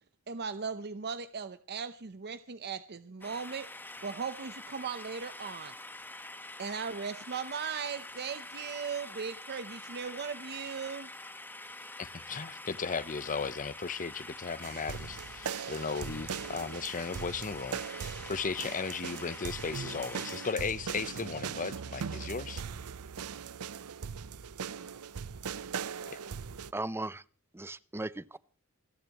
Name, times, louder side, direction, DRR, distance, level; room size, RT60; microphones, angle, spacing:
voice 1, 0.3-3.7 4.0-5.7 6.6-11.1, right 6 dB, 50° right, 0.7 m, -38 dB
sound 1, 3.2-20.5, left 2 dB, 10° left, 1.2 m, -46 dB
voice 2, 12.0-22.6 26.1-26.2, left 5 dB, 35° left, 0.8 m, -36 dB
sound 2, 14.6-26.7, right 6 dB, 90° right, 0.6 m, -40 dB
voice 3, 26.7-27.2 27.5-28.4, right 2 dB, 10° right, 0.5 m, -37 dB
28.5 x 11.0 x 3.0 m
head